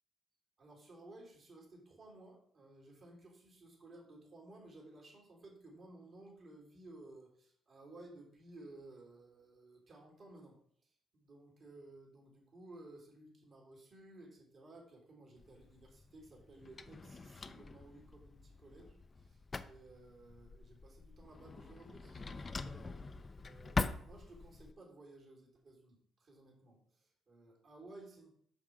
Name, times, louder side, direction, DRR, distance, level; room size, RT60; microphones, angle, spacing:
voice 1, 0.6-28.3, right 2 dB, 50° right, -2 dB, 3.2 m, -57 dB
Drawer open or close, 15.4-24.7, left 3 dB, 30° left, 0.5 m, -44 dB
6.6 x 5.7 x 4.7 m, 0.64 s
cardioid pair, 90°, 0 cm